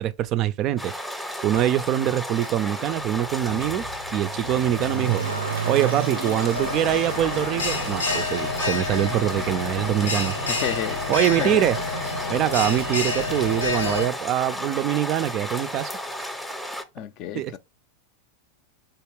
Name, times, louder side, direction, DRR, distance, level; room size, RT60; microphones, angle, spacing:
voice 1, 0.0-3.8 4.1-5.3 5.7-10.6 11.1-11.8 12.3-15.9 16.2-16.3 17.3-17.6, right 12 dB, 45° right, 0.3 m, -24 dB
sound 1, 0.8-16.8, equal, ahead, 0.6 m, -33 dB
Motor vehicle (road), 1.5-1.6 2.4-15.3 15.6-15.7, right 4 dB, 90° right, 0.6 m, -36 dB
Bell, 6.6-14.1, left 3 dB, 90° left, 0.8 m, -29 dB
voice 2, 10.5-11.0 11.4-11.6 17.0-17.6, left 11 dB, 50° left, 0.4 m, -30 dB
3.5 x 2.8 x 3.1 m
hypercardioid pair, 90°, 0 cm